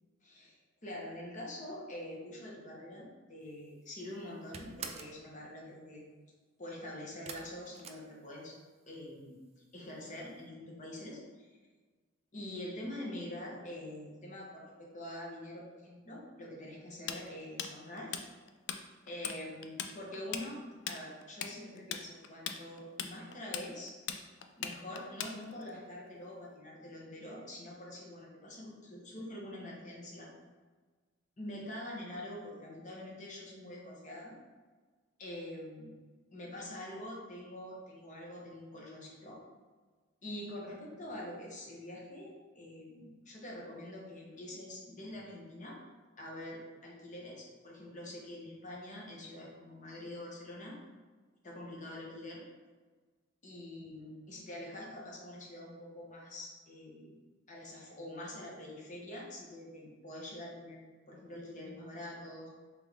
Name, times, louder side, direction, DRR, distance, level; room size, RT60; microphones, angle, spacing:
voice 1, 0.2-0.6 0.8-6.0 6.6-8.6 8.8-11.2 12.3-18.2 19.1-20.6 20.9-23.9 24.6-30.3 31.4-34.3 35.2-35.9 36.3-39.4 40.2-45.8 46.2-50.8 51.4-52.4 53.4-57.1 57.5-62.5, left 1 dB, 40° left, -3 dB, 1.0 m, -45 dB
sound 1, 3.5-3.9 4.2-5.2 7.2-8.7 9.0-9.6 9.9-10.0 10.4-10.5, right 6 dB, 35° right, 0.3 m, -47 dB
Tools, 17.1-18.8 19.1-19.4 19.6-25.7, left 8 dB, 65° left, 0.3 m, -39 dB
3.8 x 3.3 x 3.5 m, 1.4 s
head